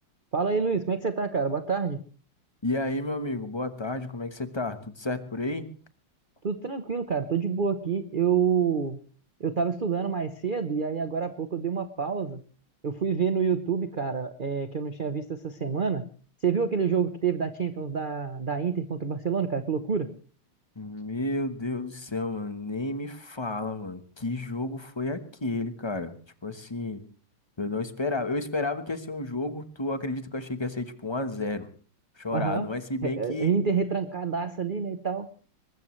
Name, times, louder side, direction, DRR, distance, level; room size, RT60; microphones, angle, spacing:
voice 1, 0.3-2.0 6.4-9.0 9.4-12.4 12.8-16.0 16.4-20.1 32.3-32.7 33.0-35.3, right 6 dB, 55° right, 9 dB, 0.5 m, -27 dB
voice 2, 2.6-5.7 20.8-26.2 26.4-27.0 27.6-31.7 32.2-33.5, left 2 dB, 20° left, 10 dB, 0.7 m, -31 dB
22.5 x 20.0 x 3.2 m, 0.40 s
omnidirectional pair, 2.3 m